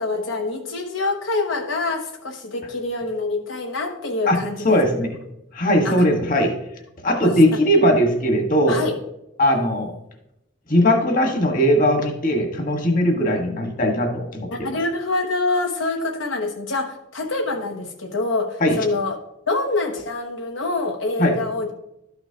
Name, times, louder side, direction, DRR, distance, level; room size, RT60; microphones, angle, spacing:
voice 1, 0.0-4.8 5.8-6.1 7.2-7.3 8.7-9.0 14.5-19.2 19.5-21.7, left 3 dB, 80° left, 3 dB, 0.9 m, -25 dB
voice 2, 4.6-5.1 5.5-6.5 7.0-8.9 9.4-9.9 10.7-14.7 18.6-18.8 21.2-21.3, equal, 45° left, 3 dB, 1.5 m, -19 dB
12.5 x 6.0 x 2.9 m, 0.83 s
head